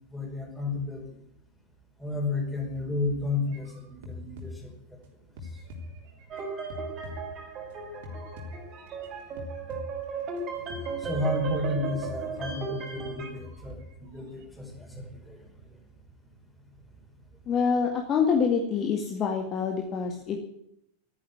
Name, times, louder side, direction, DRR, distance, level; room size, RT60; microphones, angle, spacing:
voice 1, 0.1-1.2 2.0-5.0 5.4-5.6 10.5-15.8, left 2 dB, 5° left, 2 dB, 5.0 m, -33 dB
sound 1, 3.5-5.0 5.4-7.7 8.0-10.4 10.7-11.8 12.0-12.8 13.4-14.4 14.7-15.2, left 2 dB, 50° right, 3.7 m, -44 dB
sound 2, 6.3-13.3, right 5 dB, 30° right, 5.1 m, -36 dB
voice 2, 17.5-20.4, left 6 dB, 30° left, 2 dB, 2.1 m, -26 dB
13.5 x 10.5 x 9.6 m, 0.76 s
figure-of-eight pair, 90°, 0 cm